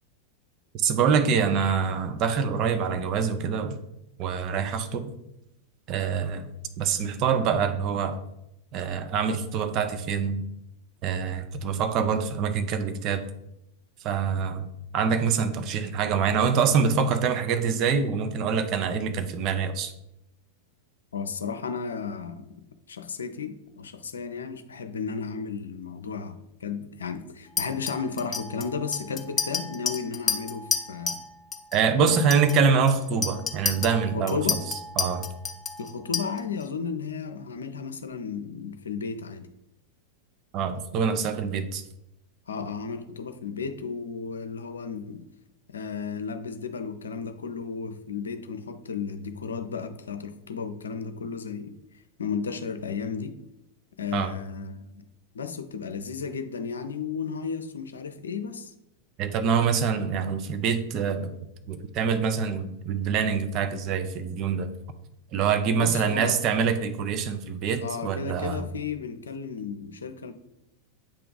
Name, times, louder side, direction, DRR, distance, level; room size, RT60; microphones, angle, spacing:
voice 1, 0.8-3.8 4.2-5.1 5.9-6.5 6.8-8.2 8.7-10.4 11.0-13.2 14.0-14.7 14.9-19.9 31.7-34.4 35.0-35.3 40.5-41.8 54.1-54.3 59.2-61.4 61.7-64.7 65.3-68.7, right 6 dB, 40° right, 9 dB, 0.6 m, -25 dB
voice 2, 21.1-22.5 22.9-31.2 32.0-32.5 34.1-34.6 35.8-39.5 42.5-45.2 45.7-51.7 52.2-53.4 54.0-55.0 55.3-58.7 65.7-66.4 67.8-70.3, left 5 dB, 70° left, 9 dB, 0.5 m, -34 dB
Chink clink, 27.6-31.3 31.5-31.8 32.1-36.6, left 5 dB, 20° left, 0.7 m, -30 dB
8.3 x 3.4 x 3.9 m, 0.85 s
figure-of-eight pair, 90°, 0 cm